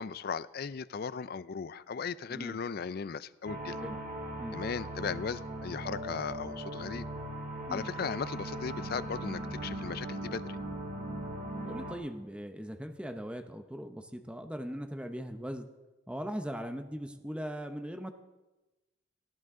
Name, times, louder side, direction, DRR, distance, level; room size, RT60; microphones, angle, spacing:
voice 1, 0.0-3.8 4.5-7.0 7.7-10.6, left 5 dB, 50° left, 17 dB, 0.4 m, -37 dB
voice 2, 2.3-2.6 3.8-4.0 4.4-4.6 7.7-7.9 11.6-15.7 16.1-18.1, equal, 5° right, 8 dB, 0.7 m, -39 dB
sound 1, 3.4-11.9, right 1 dB, 45° right, 2.4 m, -39 dB
18.5 x 13.0 x 3.7 m, 1.1 s
head